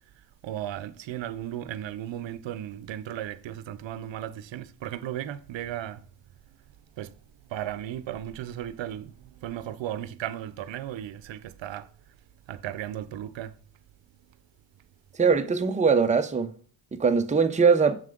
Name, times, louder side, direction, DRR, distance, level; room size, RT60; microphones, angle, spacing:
voice 1, 0.4-6.1 7.0-7.1 7.4-11.9 12.5-13.5, right 11 dB, 60° right, 0.8 m, -35 dB
voice 2, 15.2-16.5 16.9-18.0, right 5 dB, 15° right, 0.7 m, -21 dB
7.3 x 6.8 x 3.8 m
cardioid pair, 80°, 50 cm